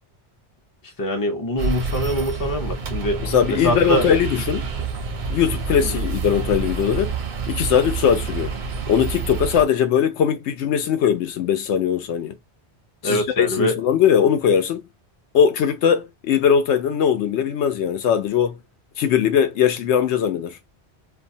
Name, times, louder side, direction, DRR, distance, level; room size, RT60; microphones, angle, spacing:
voice 1, 0.8-3.2 3.6-4.1 5.8-6.0 13.0-13.8, equal, 25° left, 0.6 m, -24 dB
sound 1, 1.6-9.6, right 5 dB, 55° right, 0.6 m, -28 dB
voice 2, 3.2-4.7 5.3-7.1 7.5-8.5 8.9-12.3 13.0-14.8 15.3-18.6 19.0-20.6, left 8 dB, 85° left, 0.9 m, -20 dB
2.5 x 2.2 x 2.6 m
omnidirectional pair, 1.1 m